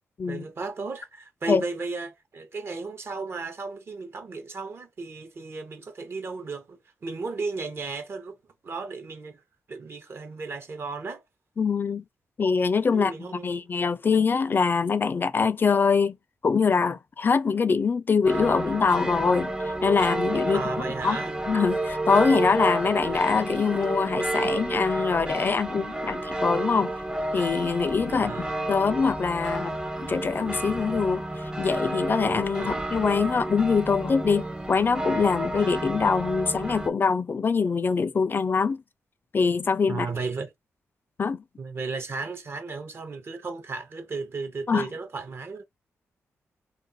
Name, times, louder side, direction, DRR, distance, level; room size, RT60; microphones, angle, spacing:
voice 1, 0.3-8.4 8.6-9.4 9.7-11.2 12.9-13.6 20.5-21.4 28.1-28.5 32.6-32.8 39.9-40.5 41.6-45.6, right 4 dB, 50° right, 0.7 m, -34 dB
voice 2, 11.6-12.0 12.4-16.2 16.4-19.5 19.8-20.6 21.0-21.2 21.5-27.0 27.3-38.8 39.3-40.1 41.2-41.4 44.7-44.9, left 5 dB, 40° left, 0.4 m, -24 dB
sound 1, 18.3-36.9, right 1 dB, 15° right, 0.6 m, -30 dB
2.4 x 2.3 x 3.9 m
cardioid pair, 75°, 5 cm